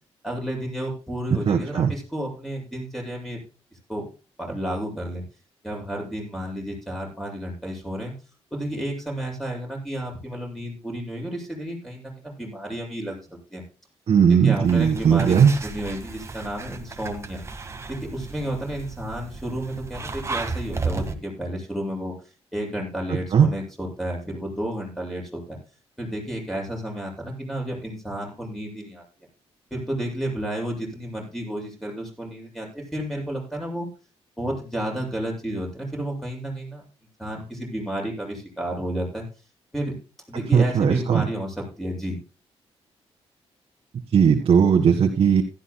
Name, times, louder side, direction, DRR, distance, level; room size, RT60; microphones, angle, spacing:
voice 1, 0.2-3.4 3.9-4.0 4.4-5.2 5.6-8.1 8.5-13.6 14.3-17.4 17.9-22.1 22.5-25.6 26.0-29.0 29.7-33.9 34.4-36.8 37.2-39.3 39.7-39.9 40.3-42.2, right 1 dB, ahead, -1 dB, 7.9 m, -31 dB
voice 2, 1.5-1.9 14.1-15.5 23.3-23.5 40.5-41.2 44.1-45.4, right 7 dB, 60° right, -1 dB, 1.7 m, -18 dB
sound 1, 14.6-21.1, right 4 dB, 25° right, 1.7 m, -34 dB
16.0 x 13.5 x 2.2 m, 0.35 s
cardioid pair, 110°, 11 cm